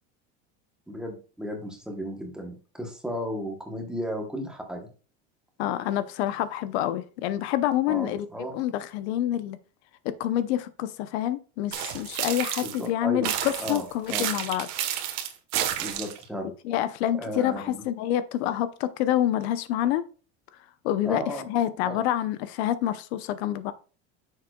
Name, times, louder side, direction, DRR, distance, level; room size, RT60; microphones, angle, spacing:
voice 1, 0.9-4.9 7.9-8.6 12.6-13.3 13.6-14.3 15.8-16.5 17.1-17.8 21.0-21.5 21.8-22.0, equal, ahead, 1.0 m, -34 dB
voice 2, 5.6-8.3 8.5-9.6 10.0-14.7 16.4-20.0 20.8-23.7, left 12 dB, 70° left, 0.7 m, -27 dB
sound 1, 11.7-12.9 13.2-16.2, right 11 dB, 50° right, 1.2 m, -30 dB
9.4 x 6.7 x 2.3 m
cardioid pair, 180°, 34 cm